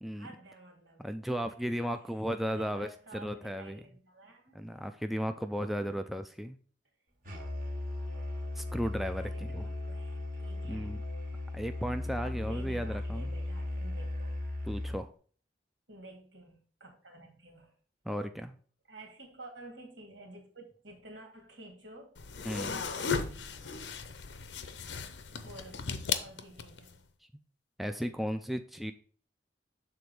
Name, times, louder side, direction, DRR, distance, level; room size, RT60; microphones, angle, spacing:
voice 1, 0.1-1.1 2.5-4.7 5.6-6.1 9.0-10.9 12.2-14.4 15.9-17.7 18.9-23.9 25.4-25.9 26.2-27.1, right 2 dB, 90° right, 2 dB, 2.2 m, -51 dB
voice 2, 1.0-3.8 4.5-6.6 8.6-9.7 10.6-11.0 11.5-13.3 14.7-15.1 18.1-18.6 22.4-22.7 27.8-28.9, equal, ahead, 7 dB, 0.3 m, -35 dB
Musical instrument, 7.2-15.0, left 2 dB, 50° right, 1.5 m, -37 dB
sound 1, 22.2-26.9, left 6 dB, 80° left, 0.7 m, -36 dB
7.0 x 3.8 x 4.7 m, 0.43 s
head